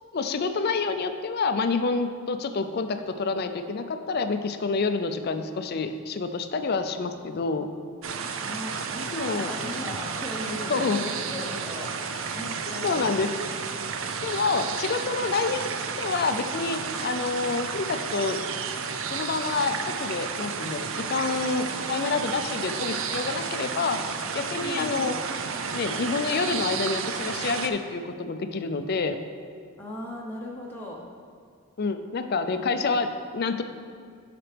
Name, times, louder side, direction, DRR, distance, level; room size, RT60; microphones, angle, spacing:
voice 1, 0.1-7.7 9.1-9.6 10.7-11.0 12.8-13.3 14.2-15.7 16.0-18.4 19.1-25.2 25.7-29.2 31.8-33.6, left 4 dB, 45° left, 8 dB, 0.4 m, -28 dB
sound 1, 8.0-27.7, right 5 dB, 65° right, 0.5 m, -32 dB
voice 2, 8.5-11.9 12.3-13.1 24.6-25.2 29.8-31.1 32.6-32.9, left 1 dB, 10° left, -4 dB, 0.8 m, -38 dB
10.0 x 5.8 x 3.4 m, 2.1 s
head